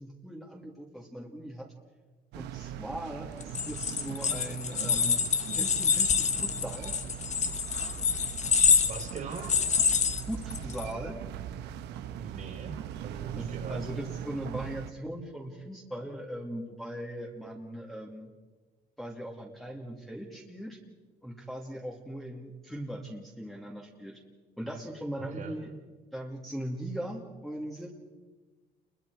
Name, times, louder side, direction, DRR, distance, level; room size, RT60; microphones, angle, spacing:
voice 1, 0.0-1.7 2.3-7.0 10.3-11.2 13.4-18.3 19.0-20.8 21.2-24.2 24.6-25.7 26.1-27.9, right 1 dB, ahead, -3 dB, 2.4 m, -39 dB
sound 1, 2.3-14.9, right 10 dB, 80° right, 1.0 m, -40 dB
sound 2, 3.4-10.8, left 6 dB, 45° left, 1.4 m, -27 dB
voice 2, 8.8-9.5 12.1-13.8 25.2-25.5, right 5 dB, 50° right, 2 dB, 3.9 m, -41 dB
29.0 x 21.5 x 4.8 m, 1.4 s
cardioid pair, 110°, 17 cm